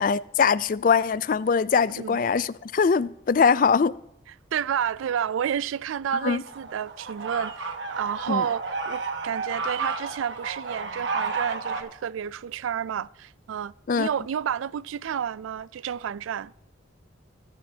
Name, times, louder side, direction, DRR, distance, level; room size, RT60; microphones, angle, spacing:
voice 1, 0.0-4.0 6.2-6.4 8.3-8.5 13.9-14.1, left 5 dB, 45° left, 0.3 m, -22 dB
voice 2, 4.5-16.5, right 8 dB, 90° right, 0.3 m, -30 dB
sound 1, 6.4-11.8, right 4 dB, 70° right, 1.3 m, -32 dB
19.0 x 9.5 x 2.8 m
head